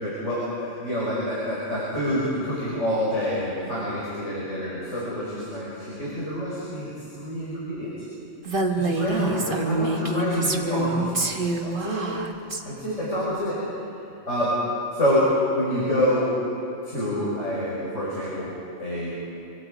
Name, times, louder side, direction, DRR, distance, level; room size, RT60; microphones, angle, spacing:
voice 1, 0.0-7.9 8.8-12.1 12.6-13.6 14.3-14.6 14.9-16.4 16.8-19.2, equal, 70° left, -8 dB, 5.7 m, -27 dB
Female speech woman speaking, 8.5-12.6, right 2 dB, 45° right, 1.6 m, -26 dB
25.5 x 25.0 x 5.1 m, 2.9 s
omnidirectional pair, 1.3 m